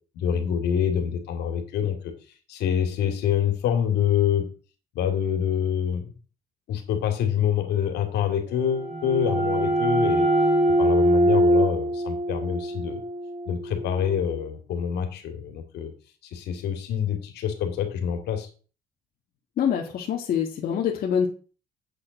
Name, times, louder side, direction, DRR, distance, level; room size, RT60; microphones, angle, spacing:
voice 1, 0.1-2.1 2.5-4.5 4.9-6.0 6.7-10.3 10.8-13.0 13.5-15.9 16.3-18.5, left 8 dB, 75° left, 6 dB, 2.7 m, -26 dB
sound 1, 8.5-14.1, right 1 dB, 35° right, 4.4 m, -23 dB
voice 2, 19.6-21.3, left 8 dB, 60° left, 0 dB, 1.8 m, -25 dB
8.5 x 5.9 x 6.5 m, 0.38 s
cardioid pair, 110°, 17 cm